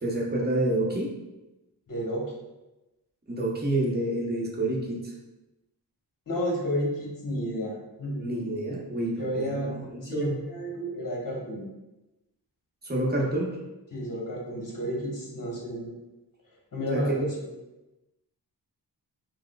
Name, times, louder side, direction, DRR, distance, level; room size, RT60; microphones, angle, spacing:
voice 1, 0.0-1.1 3.3-5.1 8.2-10.3 12.8-13.5 16.9-17.3, right 1 dB, 25° right, -2 dB, 0.9 m, -28 dB
voice 2, 1.9-2.3 6.3-8.3 9.2-9.7 10.0-11.6 13.9-15.9 16.7-17.5, equal, 50° left, -3 dB, 1.1 m, -31 dB
4.7 x 2.1 x 2.2 m, 1.0 s
cardioid pair, 50°, 42 cm